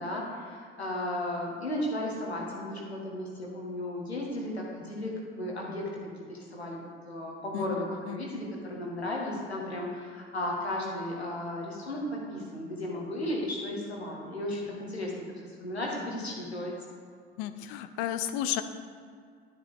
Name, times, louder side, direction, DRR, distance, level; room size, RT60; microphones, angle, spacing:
voice 1, 0.0-5.9 6.3-12.0 12.3-15.1 15.4-16.7, left 1 dB, 90° left, -3 dB, 1.6 m, -35 dB
voice 2, 17.4-18.6, left 12 dB, 60° left, 10 dB, 0.6 m, -32 dB
11.5 x 7.4 x 3.6 m, 2.2 s
figure-of-eight pair, 60°, 31 cm